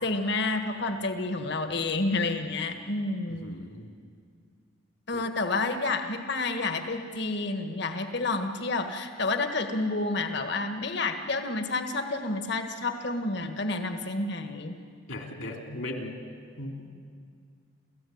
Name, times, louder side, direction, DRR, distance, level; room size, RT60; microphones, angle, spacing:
voice 1, 0.0-3.6 5.1-14.8, left 3 dB, 55° left, 7 dB, 1.6 m, -29 dB
voice 2, 3.4-3.9 5.1-5.2 15.1-16.2 16.6-16.9, left 1 dB, 75° left, 3 dB, 3.2 m, -37 dB
29.5 x 15.0 x 9.5 m, 2.1 s
head